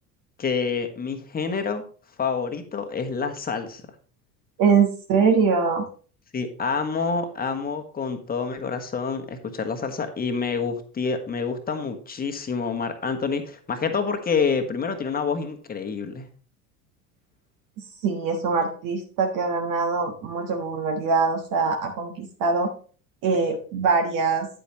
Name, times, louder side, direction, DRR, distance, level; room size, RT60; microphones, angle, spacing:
voice 1, 0.4-1.8 2.2-3.8 6.3-16.3, left 5 dB, 20° left, 7 dB, 1.4 m, -27 dB
voice 2, 4.6-5.9 18.0-22.7 23.2-24.5, right 5 dB, 45° right, 3 dB, 1.4 m, -23 dB
9.2 x 8.4 x 3.0 m, 0.41 s
figure-of-eight pair, 75°, 45 cm